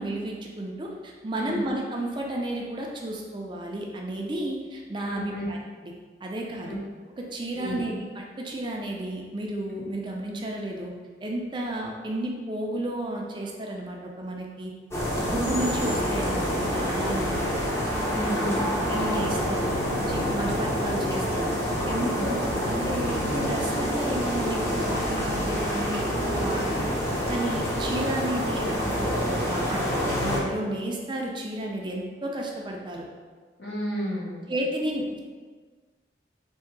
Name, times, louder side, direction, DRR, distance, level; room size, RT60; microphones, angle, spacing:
voice 1, 0.0-5.6 5.8-5.9 6.2-6.8 7.2-10.9 11.2-14.7 15.1-17.6 18.9-19.7 20.1-21.6 21.8-26.9 27.3-33.1 34.5-35.2, right 1 dB, 25° right, 0 dB, 0.4 m, -32 dB
voice 2, 5.0-5.5 6.6-6.8 7.5-7.8 9.7-9.9 18.1-18.6 22.1-22.3 33.6-34.5, equal, 70° left, -6 dB, 1.3 m, -32 dB
sound 1, 14.9-30.4, equal, 15° left, 0.7 m, -27 dB
3.6 x 2.7 x 4.5 m, 1.5 s
head